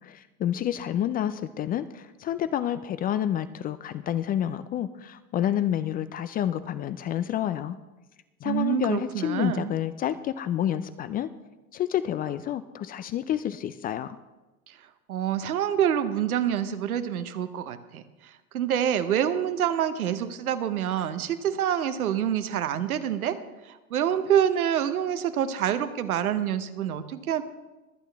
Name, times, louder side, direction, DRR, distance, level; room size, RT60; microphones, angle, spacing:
voice 1, 0.0-7.8 8.4-11.3 11.7-14.2, left 11 dB, 25° left, 14 dB, 0.3 m, -29 dB
voice 2, 8.4-9.7 14.7-14.8 15.1-23.4 23.6-27.4, right 9 dB, 85° right, 11 dB, 1.0 m, -27 dB
23.5 x 8.3 x 3.5 m, 1.1 s
hypercardioid pair, 95°, 42 cm